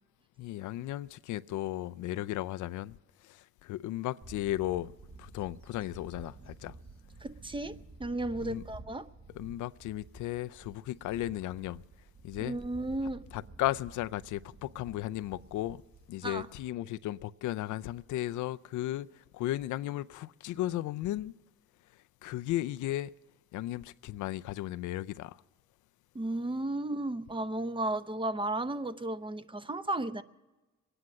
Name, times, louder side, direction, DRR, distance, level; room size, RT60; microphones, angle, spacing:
voice 1, 0.4-4.9 5.2-6.8 8.4-8.6 9.3-11.8 12.2-12.6 13.3-15.8 16.1-21.3 21.9-23.1 23.5-25.4, left 14 dB, 80° left, 0.5 m, -35 dB
Bird / Wind, 4.2-17.0, right 3 dB, 45° right, 2.5 m, -52 dB
voice 2, 7.2-9.0 12.4-13.2 16.2-16.5 26.1-30.2, right 2 dB, 15° right, 0.7 m, -34 dB
23.0 x 9.8 x 6.2 m
cardioid pair, 90°, 30 cm